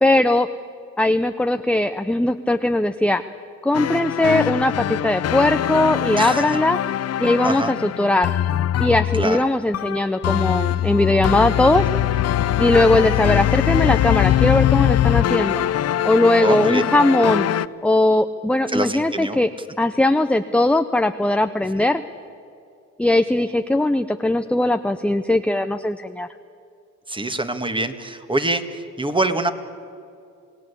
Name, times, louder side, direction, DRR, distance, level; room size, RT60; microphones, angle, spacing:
voice 1, 0.0-0.5 1.0-3.2 3.6-6.8 7.2-8.3 8.8-11.9 12.6-15.6 16.0-17.5 17.8-19.5 19.8-22.0 23.0-26.3, left 1 dB, 5° left, 8 dB, 0.8 m, -19 dB
sound 1, 3.7-17.7, left 12 dB, 55° left, 0.7 m, -22 dB
voice 2, 6.2-6.5 7.4-7.7 9.1-9.4 16.4-16.9 18.7-19.4 27.1-29.5, right 2 dB, 15° right, 8 dB, 1.9 m, -24 dB
28.0 x 18.0 x 8.4 m, 2.5 s
cardioid pair, 90°, 30 cm